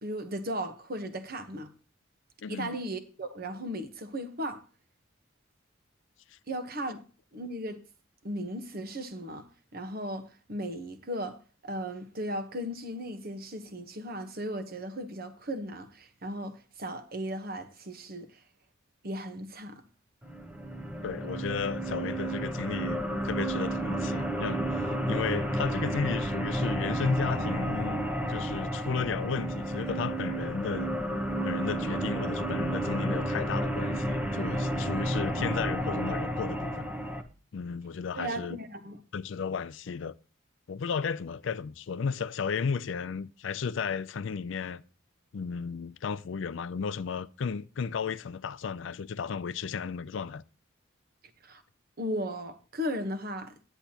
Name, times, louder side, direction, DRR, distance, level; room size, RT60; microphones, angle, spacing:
voice 1, 0.0-1.7 2.5-4.6 6.5-7.0 7.3-7.8 8.2-9.5 9.7-18.4 19.0-19.8 38.1-39.0 51.4-51.6 52.0-53.5, equal, 50° right, 1.1 m, -36 dB
voice 2, 2.4-2.7 21.0-28.0 28.3-30.9 31.4-36.8 37.5-38.6 39.1-40.1 40.7-44.8 45.3-50.4, left 6 dB, 65° left, 0.4 m, -34 dB
sound 1, 20.2-37.2, right 1 dB, 10° right, 0.9 m, -31 dB
10.0 x 9.0 x 2.9 m
head